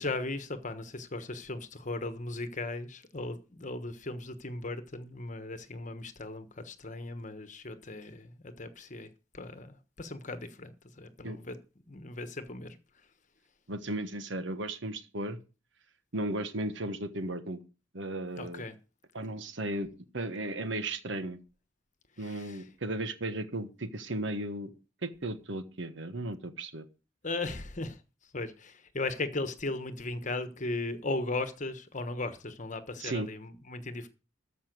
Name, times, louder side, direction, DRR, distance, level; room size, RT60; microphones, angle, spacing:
voice 1, 0.0-9.1 9.3-11.6 11.9-12.8 18.4-18.8 22.2-22.6 27.2-28.0 28.3-34.1, left 2 dB, 35° left, 1.2 m, -37 dB
voice 2, 13.7-15.4 16.1-17.6 17.9-18.7 19.1-19.9 20.1-21.4 22.2-24.7 25.0-26.8 33.0-33.3, right 1 dB, 60° right, 1.3 m, -35 dB
14.0 x 5.7 x 6.7 m
head